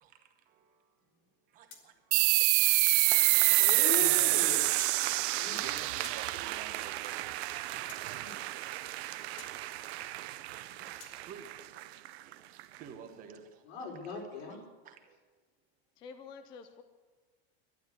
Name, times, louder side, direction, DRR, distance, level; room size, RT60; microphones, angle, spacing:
voice 1, 0.0-0.9 1.5-2.6 4.0-7.3 9.4-10.4 10.8-11.6 12.2-12.4 12.7-13.6 14.8-15.2, right 7 dB, 25° right, 6 dB, 1.0 m, -52 dB
sound 1, 1.7-2.8 3.7-3.8 4.8-5.0 6.0-6.2 7.9-8.0 9.4-9.5 11.0-11.2, left 6 dB, 45° left, 2.5 m, -49 dB
sound 2, 2.1-7.3, right 20 dB, 55° right, 0.5 m, -26 dB
sound 3, 2.6-12.9, right 15 dB, 80° right, 0.8 m, -39 dB
voice 2, 3.6-4.7 5.3-6.0 8.1-8.5 10.7-10.9 13.7-14.6, left 5 dB, 80° left, 0 dB, 4.4 m, -40 dB
voice 3, 16.0-16.8, left 5 dB, 15° left, 8 dB, 0.4 m, -48 dB
12.0 x 10.0 x 9.5 m, 1.4 s
supercardioid pair, 180°, 31 cm